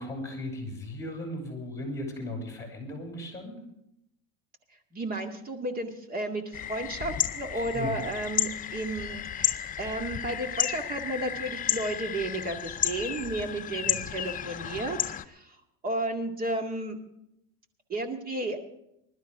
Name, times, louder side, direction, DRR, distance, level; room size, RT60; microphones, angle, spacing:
voice 1, 0.0-3.7 7.5-8.0 13.9-14.0, left 1 dB, 10° left, 1 dB, 6.1 m, -37 dB
voice 2, 4.9-15.0 15.2-15.6 15.8-17.0 17.9-18.6, right 2 dB, 30° right, 5 dB, 2.1 m, -33 dB
sound 1, 6.5-15.2, left 10 dB, 25° left, 0.6 m, -32 dB
20.5 x 12.5 x 3.7 m, 0.79 s
supercardioid pair, 130°, 31 cm